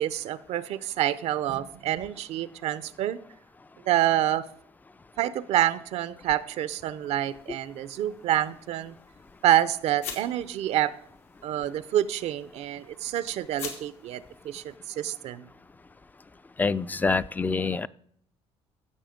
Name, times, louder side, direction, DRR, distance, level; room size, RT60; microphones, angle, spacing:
voice 1, 0.0-3.2 3.9-4.4 5.2-8.9 9.4-10.9 11.4-15.5, right 12 dB, 70° right, 15 dB, 0.6 m, -27 dB
sound 1, 7.0-14.8, left 6 dB, 85° left, 2.7 m, -46 dB
voice 2, 16.6-17.9, left 4 dB, 15° left, 17 dB, 0.4 m, -26 dB
15.0 x 6.9 x 5.1 m, 0.68 s
cardioid pair, 120°, 11 cm